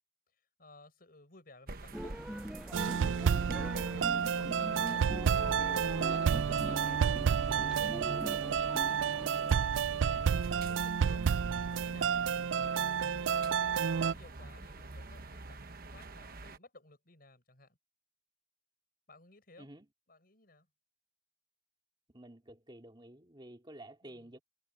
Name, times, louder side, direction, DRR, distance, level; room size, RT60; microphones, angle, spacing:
voice 1, 0.6-2.2 2.7-4.1 4.6-5.3 6.0-9.2 9.6-12.2 13.6-17.8 19.1-19.7 20.1-20.7 24.0-24.4, left 2 dB, 50° left, 6.8 m, -56 dB
sound 1, 1.7-16.6, right 2 dB, 50° right, 1.1 m, -48 dB
sound 2, 1.9-9.6, equal, 5° right, 0.4 m, -43 dB
sound 3, 2.7-14.1, right 7 dB, 85° right, 0.4 m, -30 dB
voice 2, 22.1-24.4, right 1 dB, 25° right, 3.0 m, -51 dB
head